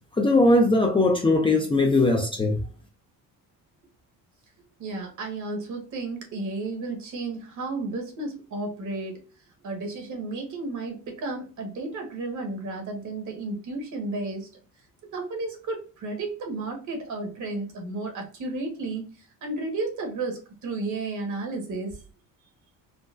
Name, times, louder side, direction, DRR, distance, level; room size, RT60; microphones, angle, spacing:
voice 1, 0.2-2.6, left 2 dB, 15° left, 0.5 m, -20 dB
voice 2, 4.8-9.2 9.6-14.5 15.0-22.0, right 3 dB, 55° right, 1.3 m, -33 dB
3.8 x 2.2 x 2.4 m
cardioid pair, 125°, 35 cm